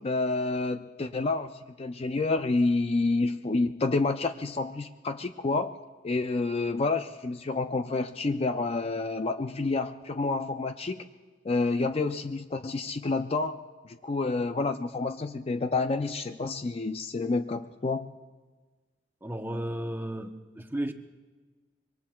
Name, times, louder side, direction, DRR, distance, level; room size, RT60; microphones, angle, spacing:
voice 1, 0.0-5.8 6.0-11.0 11.4-13.6 13.8-18.1, left 3 dB, 30° left, 8 dB, 0.4 m, -29 dB
voice 2, 19.2-20.9, right 1 dB, 10° right, 6 dB, 0.8 m, -34 dB
26.0 x 23.5 x 2.3 m, 1.3 s
head